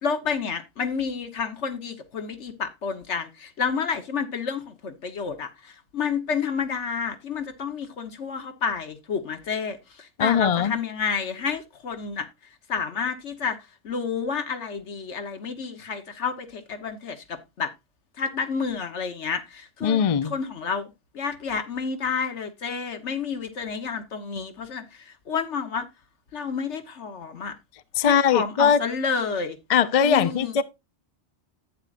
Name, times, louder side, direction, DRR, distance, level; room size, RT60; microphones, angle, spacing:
voice 1, 0.0-12.3 12.7-13.6 13.8-17.7 18.2-25.9 26.3-27.5 28.0-29.6 30.0-30.6, left 5 dB, 75° left, 1.5 m, -30 dB
voice 2, 10.2-10.7 19.8-20.3 28.0-28.8 29.7-30.6, left 7 dB, 45° left, 0.5 m, -20 dB
11.0 x 8.7 x 2.5 m
omnidirectional pair, 1.2 m